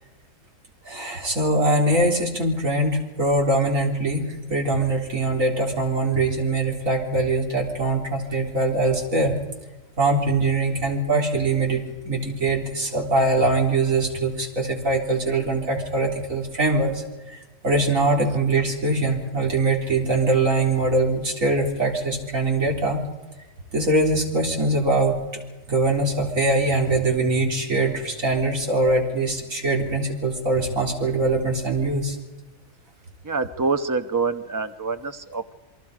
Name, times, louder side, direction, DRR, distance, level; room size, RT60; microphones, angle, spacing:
voice 1, 0.8-9.3 10.0-17.0 17.6-23.0 23.7-25.2 25.7-32.2, right 2 dB, 75° right, 0 dB, 4.2 m, -22 dB
voice 2, 33.2-35.5, right 4 dB, 15° right, 8 dB, 0.8 m, -26 dB
28.0 x 23.5 x 4.9 m, 1.1 s
omnidirectional pair, 1.4 m